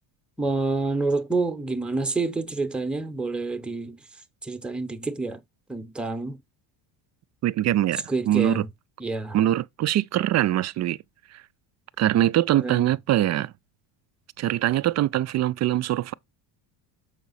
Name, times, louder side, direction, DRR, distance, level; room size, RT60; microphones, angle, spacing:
voice 1, 0.4-4.0 4.4-5.4 5.7-6.4 8.1-8.7 9.0-9.4 12.6-12.9, right 3 dB, ahead, 0.8 m, -28 dB
voice 2, 7.4-8.6 9.3-11.0 11.3-11.4 12.0-13.5 14.4-16.1, right 13 dB, 35° right, 0.4 m, -23 dB
7.2 x 4.7 x 4.0 m
supercardioid pair, 105°, 50 cm